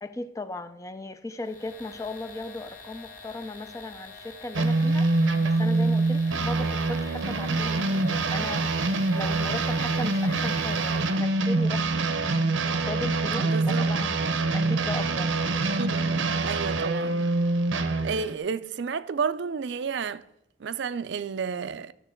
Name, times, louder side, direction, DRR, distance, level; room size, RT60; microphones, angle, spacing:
voice 1, 0.0-5.1 5.4-8.7 9.1-12.2 12.7-15.6, left 2 dB, 15° left, 0.4 m, -37 dB
sound 1, 1.4-11.3, left 4 dB, 45° left, 1.7 m, -46 dB
sound 2, 4.5-18.3, right 3 dB, 80° right, 0.7 m, -25 dB
voice 2, 13.5-13.9 15.8-16.0 16.4-17.3 18.0-20.2 20.6-21.9, right 6 dB, 65° right, 0.4 m, -31 dB
13.0 x 6.7 x 4.4 m
head